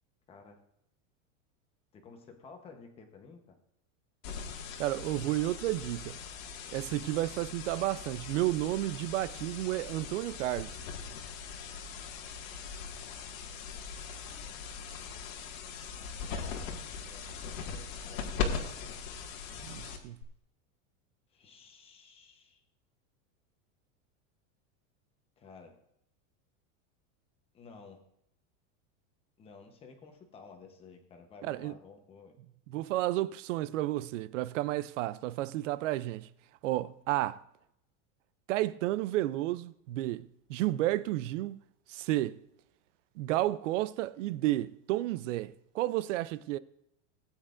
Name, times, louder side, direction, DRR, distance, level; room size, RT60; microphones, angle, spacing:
voice 1, 0.3-0.6 1.9-3.6 16.0-18.5 21.3-22.6 25.4-25.8 27.5-28.0 29.4-32.3, left 4 dB, 15° left, 0.9 m, -53 dB
sound 1, 4.2-20.2, left 6 dB, 85° left, 1.9 m, -40 dB
voice 2, 4.8-6.2 6.7-10.8 19.6-20.2 31.4-31.7 32.7-36.3 36.6-37.4 38.5-41.6 41.9-42.4 43.2-46.6, right 16 dB, 70° right, 0.5 m, -32 dB
18.0 x 8.9 x 2.5 m
supercardioid pair, 175°, 39 cm